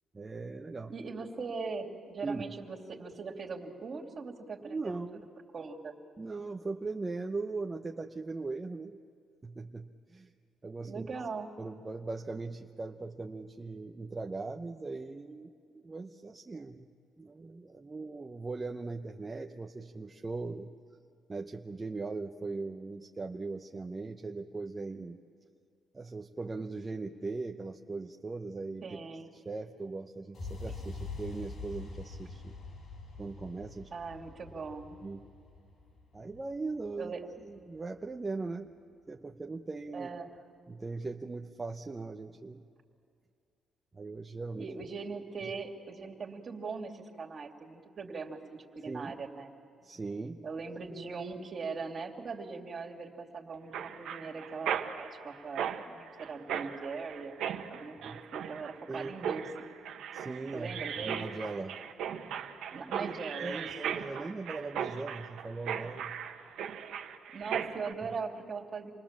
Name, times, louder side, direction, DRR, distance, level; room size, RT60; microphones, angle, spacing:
voice 1, 0.1-0.9 2.2-2.4 4.6-5.3 6.2-9.0 9.4-10.3 10.6-11.0 11.6-16.9 17.2-20.7 21.3-25.2 25.9-28.8 29.3-32.5 33.2-33.9 35.0-35.2 36.1-37.1 37.4-38.7 39.1-40.1 40.7-42.6 43.9-44.7 45.4-45.5 48.9-49.2 49.8-50.4 58.0-58.2 58.9-59.1 60.1-61.8 62.9-63.1 63.4-66.2, right 3 dB, 25° right, 3 dB, 0.8 m, -39 dB
voice 2, 0.9-4.9 5.5-5.9 10.8-11.5 28.8-29.3 33.9-34.9 37.0-37.2 39.9-40.3 44.6-49.5 50.4-57.4 57.7-59.4 60.5-61.2 62.7-63.9 67.3-68.9, right 4 dB, 50° right, -1 dB, 2.6 m, -40 dB
sound 1, 30.3-38.3, left 3 dB, 55° left, 4.5 m, -45 dB
Mechanisms, 53.7-67.9, right 8 dB, 80° right, 1.2 m, -38 dB
27.5 x 20.0 x 7.4 m, 2.3 s
cardioid pair, 90°, 0 cm